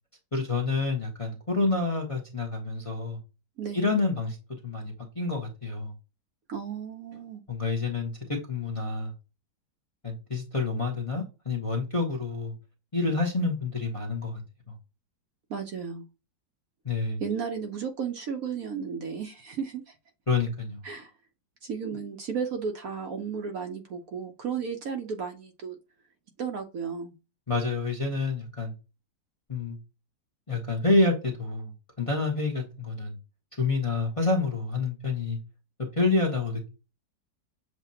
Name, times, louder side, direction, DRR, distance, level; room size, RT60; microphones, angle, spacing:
voice 1, 0.3-3.2 3.7-4.4 4.6-5.9 7.5-8.1 8.5-9.1 10.0-12.5 12.9-14.4 14.7-14.8 16.8-17.2 20.3-20.8 27.5-28.7 29.5-29.8 30.5-31.7 32.0-33.2 33.6-35.4 36.0-36.7, left 3 dB, 25° left, 0.9 m, -28 dB
voice 2, 3.6-4.0 6.5-7.4 15.5-16.1 17.2-19.9 20.8-21.1 21.6-25.8 26.4-27.2, right 6 dB, 60° right, 1.0 m, -34 dB
7.4 x 2.5 x 2.7 m
omnidirectional pair, 1.9 m